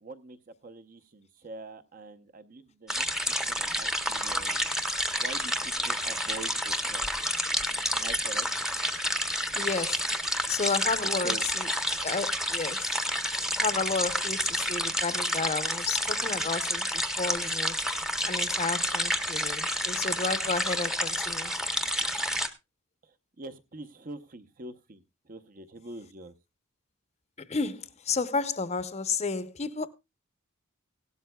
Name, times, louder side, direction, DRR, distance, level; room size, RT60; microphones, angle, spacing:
voice 1, 0.0-3.0 3.5-4.7 5.2-7.1 7.8-8.5 10.9-11.5 23.0-26.3, right 3 dB, 40° right, 0.8 m, -44 dB
sound 1, 2.9-22.5, equal, ahead, 0.8 m, -29 dB
voice 2, 9.5-10.0 10.5-11.7 12.0-13.0 13.5-17.8 18.3-21.5 27.5-29.9, left 4 dB, 30° left, 0.7 m, -32 dB
17.0 x 12.5 x 2.3 m
head